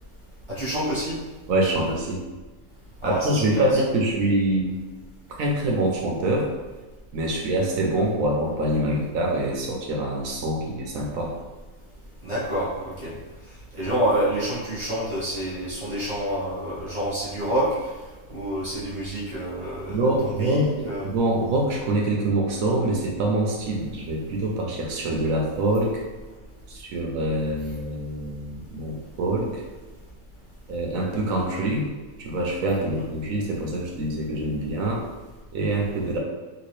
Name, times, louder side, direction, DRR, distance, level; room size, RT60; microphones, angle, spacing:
voice 1, 0.5-1.2 3.0-3.6 12.2-13.1 13.8-17.8 18.3-21.1, right 1 dB, 25° right, -9 dB, 1.1 m, -28 dB
voice 2, 1.5-2.2 3.0-4.7 5.4-6.5 7.1-11.3 19.9-20.7 21.0-26.0 26.7-29.6 30.7-31.9 32.2-35.0 35.5-36.2, right 1 dB, 70° right, -2 dB, 1.0 m, -25 dB
3.1 x 2.9 x 3.1 m, 1.3 s
omnidirectional pair, 1.5 m